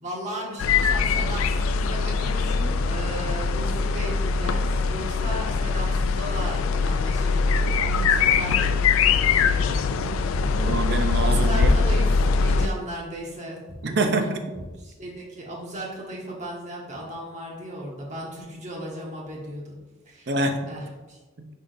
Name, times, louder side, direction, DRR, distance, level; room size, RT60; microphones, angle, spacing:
voice 1, 0.0-8.8 9.1-10.0 11.2-13.6 13.9-14.5 14.8-19.8 20.0-20.3 20.7-21.2, right 1 dB, 35° right, -3 dB, 1.4 m, -36 dB
sound 1, 0.6-12.7, left 4 dB, 80° left, 0.4 m, -22 dB
voice 2, 10.5-11.7 13.8-14.4 20.3-20.8 21.4-21.5, right 2 dB, 50° right, 6 dB, 0.6 m, -26 dB
10.0 x 3.7 x 2.6 m, 1.2 s
head